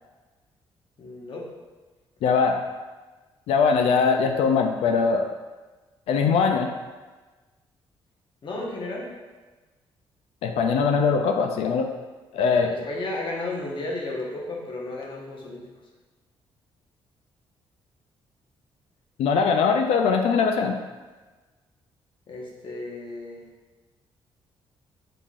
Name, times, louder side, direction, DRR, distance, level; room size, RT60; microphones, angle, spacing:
voice 1, 1.0-1.5 8.4-9.1 12.7-15.6 22.3-23.4, left 2 dB, 55° left, -2 dB, 1.1 m, -33 dB
voice 2, 2.2-2.6 3.5-5.3 6.1-6.7 10.4-11.9 12.3-12.7 19.2-20.8, left 5 dB, 80° left, 5 dB, 0.4 m, -21 dB
5.7 x 3.5 x 2.4 m, 1.3 s
cardioid pair, 75°, 10 cm